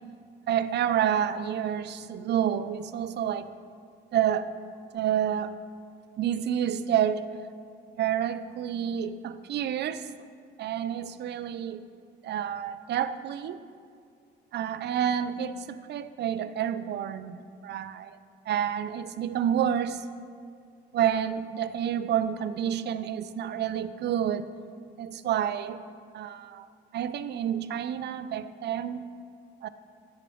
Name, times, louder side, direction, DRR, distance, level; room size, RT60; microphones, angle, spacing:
voice 1, 0.5-3.5 4.1-4.5 4.9-5.6 6.2-7.2 8.0-10.1 10.6-11.8 12.2-13.6 14.5-17.4 17.6-18.2 18.5-20.1 20.9-24.5 25.0-25.8 26.1-26.7 26.9-29.0 29.6-29.7, right 9 dB, 60° right, 13 dB, 0.4 m, -29 dB
9.9 x 6.9 x 3.1 m, 2.3 s
cardioid pair, 90°, 20 cm